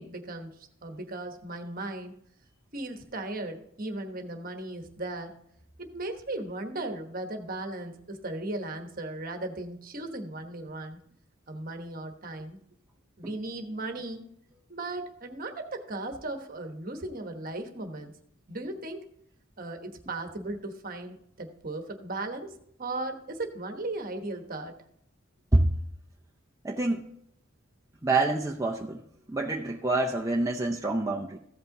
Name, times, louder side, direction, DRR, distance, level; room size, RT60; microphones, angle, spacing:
voice 1, 0.0-2.1 2.7-5.4 5.8-11.0 11.5-12.6 13.2-14.2 14.7-18.1 18.5-19.1 19.6-24.8, right 2 dB, 40° right, 5 dB, 1.1 m, -37 dB
voice 2, 26.6-27.0 28.0-29.0 29.3-31.4, right 2 dB, 15° right, 0 dB, 0.6 m, -26 dB
14.5 x 5.6 x 3.8 m, 0.71 s
head